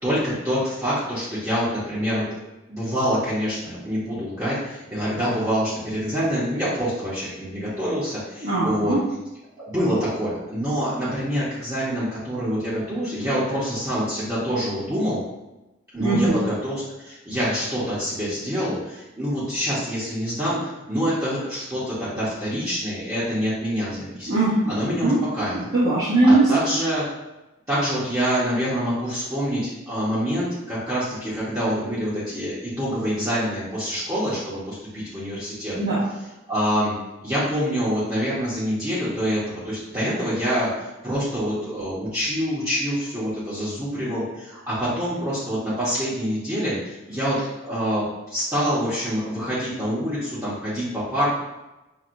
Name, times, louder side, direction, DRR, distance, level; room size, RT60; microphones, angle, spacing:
voice 1, 0.0-2.2 2.7-9.0 9.6-15.2 15.9-24.3 24.7-25.6 26.2-27.1 27.7-35.8 36.5-37.0 37.2-51.3, equal, 15° right, -12 dB, 0.9 m, -26 dB
voice 2, 8.4-9.0 16.0-16.4 24.3-25.2 25.5-26.5 35.7-36.0, right 2 dB, 75° right, -12 dB, 1.2 m, -20 dB
5.9 x 2.3 x 2.5 m, 1.0 s
head